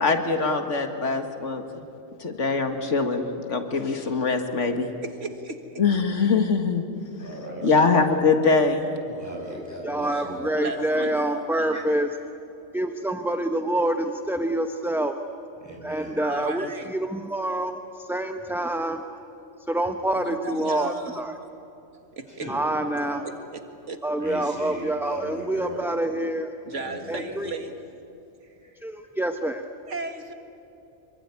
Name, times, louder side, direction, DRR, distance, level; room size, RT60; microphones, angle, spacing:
voice 1, 0.0-1.9 2.2-4.9 5.8-6.8 7.6-8.9 16.6-16.7, left 4 dB, 80° left, 6 dB, 2.1 m, -23 dB
voice 2, 5.0-5.6 10.4-11.8 16.2-16.9 20.1-21.2 22.2-22.5 23.2-23.6 23.9-24.0 26.6-27.7 29.9-30.3, right 3 dB, 80° right, 6 dB, 2.2 m, -35 dB
voice 3, 7.2-8.1 9.1-10.5 11.7-11.8 15.6-16.2 22.3-23.2 24.2-25.8 26.7-27.5 28.6-28.8, right 1 dB, 15° left, -2 dB, 7.0 m, -38 dB
voice 4, 9.8-12.1 12.7-15.1 15.8-17.8 18.1-19.0 19.7-21.3 22.5-23.2 24.0-26.5 27.1-27.5 28.8-29.6, right 1 dB, ahead, 6 dB, 0.7 m, -26 dB
26.0 x 23.5 x 9.7 m, 2.9 s
omnidirectional pair, 1.2 m